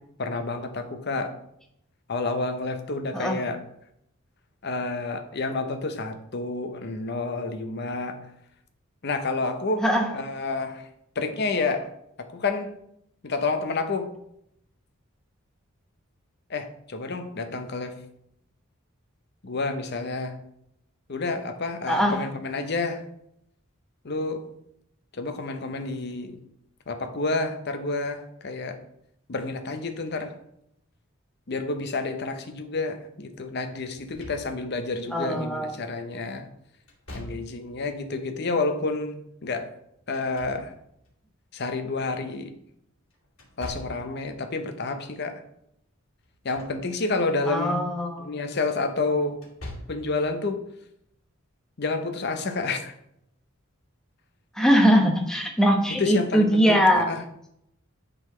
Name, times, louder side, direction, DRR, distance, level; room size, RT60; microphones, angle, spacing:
voice 1, 0.2-1.4 2.1-3.6 4.6-8.2 9.0-9.8 10.1-10.9 11.2-11.9 12.2-12.8 13.2-14.1 16.5-18.0 19.4-20.4 21.1-23.0 24.0-24.5 25.1-26.4 26.9-28.8 29.3-30.4 31.5-36.5 37.1-39.7 40.1-40.7 41.5-42.5 43.6-45.4 46.4-47.8 48.2-49.4 49.9-50.6 51.8-52.9 55.9-57.2, left 3 dB, 50° left, 6 dB, 0.8 m, -29 dB
voice 2, 9.8-10.1 21.9-22.2 35.1-35.7 47.5-48.3 54.5-57.1, equal, 5° left, 1 dB, 1.0 m, -21 dB
Slam / Thump thud, 34.0-34.9 36.9-37.8 40.0-41.1 43.4-44.2 46.3-46.8 47.2-47.3 49.3-50.1, left 1 dB, 75° left, 2.3 m, -42 dB
10.5 x 4.0 x 3.2 m, 0.76 s
head